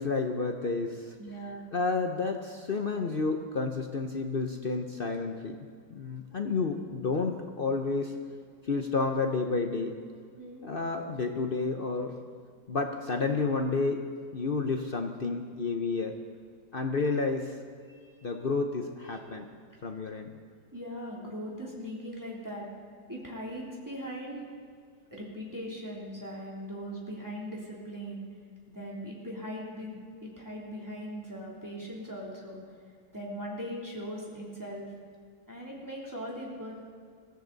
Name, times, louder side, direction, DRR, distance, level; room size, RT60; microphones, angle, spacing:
voice 1, 0.0-1.2 1.7-5.6 5.9-8.1 8.7-10.0 10.6-12.1 12.7-14.0 14.3-16.1 16.7-17.5 18.2-19.4 19.8-20.3, left 4 dB, 55° left, 5 dB, 0.6 m, -30 dB
voice 2, 1.2-1.7 10.4-10.7 17.9-18.1 19.3-19.4 19.7-19.8 20.7-22.7 23.1-24.5 25.1-28.2 28.7-32.6 33.1-34.9 35.5-36.8, equal, 10° right, -4 dB, 3.0 m, -40 dB
22.0 x 15.0 x 4.0 m, 2.1 s
omnidirectional pair, 2.1 m